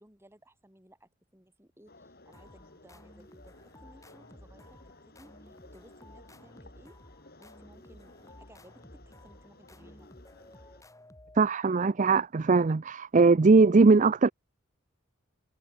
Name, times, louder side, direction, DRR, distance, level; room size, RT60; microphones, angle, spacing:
voice 1, 0.0-4.8 5.1-7.0 7.4-10.1, right 1 dB, 10° right, 7.7 m, -59 dB
sound 1, 1.9-10.8, left 2 dB, 50° left, 6.0 m, -56 dB
sound 2, 2.3-11.8, left 1 dB, 15° left, 5.8 m, -55 dB
voice 2, 11.4-14.3, right 4 dB, 40° right, 0.5 m, -20 dB
head